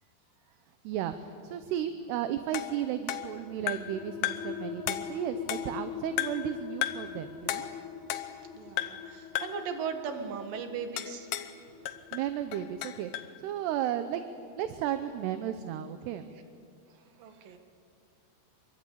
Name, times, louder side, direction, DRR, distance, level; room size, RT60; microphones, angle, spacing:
voice 1, 0.8-7.7 11.8-14.2 14.5-16.3, right 10 dB, 75° right, 9 dB, 2.7 m, -34 dB
sound 1, 2.5-4.0 4.2-4.6 4.9-5.8 6.2-6.5 6.8-7.1 7.5-8.5 8.8-9.1 9.4-9.7 11.0-11.6 11.9-13.3, left 13 dB, 80° left, 2.0 m, -35 dB
sound 2, 3.2-14.4, left 6 dB, 60° left, 4.2 m, -43 dB
voice 2, 8.5-11.3 16.9-17.6, right 6 dB, 60° right, 6 dB, 3.1 m, -38 dB
26.0 x 23.5 x 8.5 m, 2.4 s
omnidirectional pair, 5.3 m